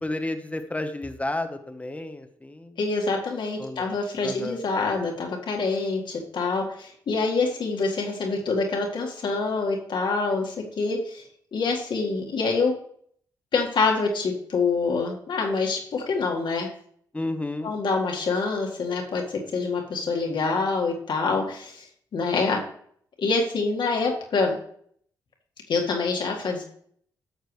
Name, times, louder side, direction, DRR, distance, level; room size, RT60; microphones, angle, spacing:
voice 1, 0.0-2.8 3.6-3.9 4.2-4.6 17.1-17.7, left 2 dB, 15° left, 9 dB, 1.1 m, -31 dB
voice 2, 2.8-11.2 11.5-12.7 13.5-16.7 17.6-21.9 22.1-22.6 23.2-24.6 25.7-26.6, left 4 dB, 65° left, 1 dB, 1.8 m, -26 dB
11.0 x 6.6 x 3.2 m, 0.63 s
supercardioid pair, 50°, 9 cm